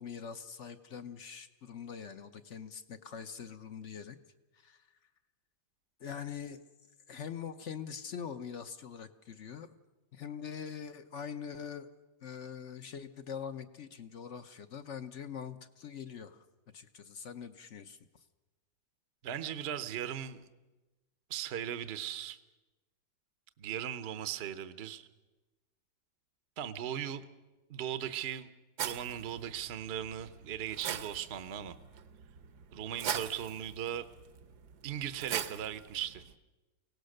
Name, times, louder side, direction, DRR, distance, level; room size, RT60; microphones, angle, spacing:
voice 1, 0.0-4.2 4.5-4.9 6.0-6.7 7.1-9.8 10.1-11.9 12.2-16.5 16.7-18.2, left 7 dB, 55° left, 10 dB, 0.9 m, -43 dB
voice 2, 19.2-20.4 21.3-22.4 23.6-25.1 26.6-27.2 27.7-28.5 28.8-31.7 32.7-34.1 34.8-36.2, right 10 dB, 45° right, 12 dB, 0.9 m, -38 dB
sound 1, 28.8-36.3, right 8 dB, 65° right, 1.3 m, -42 dB
24.0 x 18.0 x 6.6 m, 1.1 s
omnidirectional pair, 2.0 m